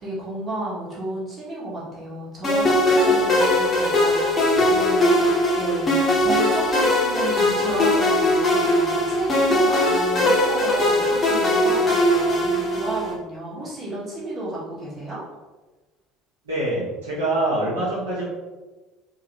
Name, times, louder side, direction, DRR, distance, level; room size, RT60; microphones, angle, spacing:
voice 1, 0.0-15.2, right 1 dB, 30° right, -6 dB, 1.4 m, -32 dB
sound 1, 2.4-13.1, left 1 dB, 30° left, 1.0 m, -20 dB
voice 2, 16.4-18.2, right 1 dB, 70° right, -8 dB, 1.1 m, -25 dB
3.8 x 2.7 x 3.0 m, 1.2 s
figure-of-eight pair, 60°, 0 cm